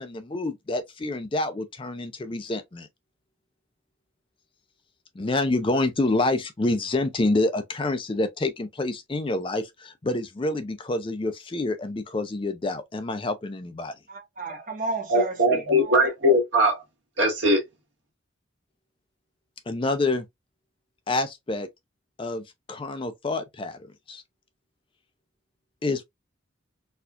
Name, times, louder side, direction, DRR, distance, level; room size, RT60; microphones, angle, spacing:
voice 1, 0.0-2.9 5.2-13.9 19.7-20.2 21.1-21.7 22.2-23.8 24.1-24.2 25.8-26.0, left 2 dB, 25° left, 0.4 m, -27 dB
voice 2, 14.1-16.1, right 3 dB, 40° right, 1.0 m, -33 dB
voice 3, 15.1-16.8 17.2-17.6, equal, 60° right, 1.4 m, -20 dB
4.2 x 2.3 x 2.4 m
head